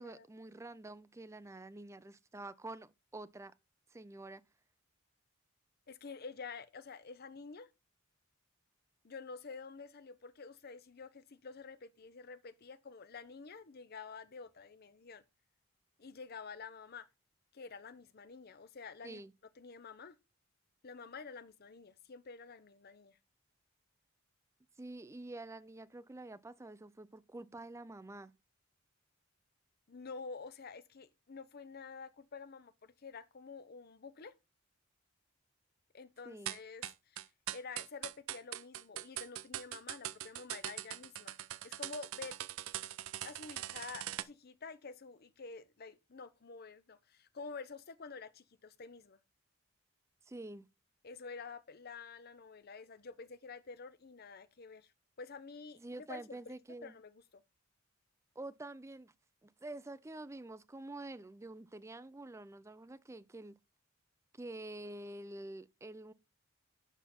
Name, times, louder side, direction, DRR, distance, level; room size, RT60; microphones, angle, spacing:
voice 1, 0.0-3.5 3.9-4.4 19.0-19.3 24.8-28.3 36.3-36.5 50.3-50.7 55.8-56.9 58.4-59.1 59.4-63.5 64.4-66.1, right 2 dB, 15° right, 0.4 m, -47 dB
voice 2, 5.9-7.7 9.0-15.2 16.0-17.1 17.5-19.2 19.6-20.2 20.8-23.2 29.9-34.3 35.9-41.4 41.6-42.4 43.2-49.2 51.0-54.9 55.2-56.5 56.8-57.4, left 4 dB, 50° left, 0.7 m, -49 dB
sound 1, 36.5-44.2, right 13 dB, 80° right, 0.5 m, -42 dB
8.2 x 5.6 x 4.2 m
head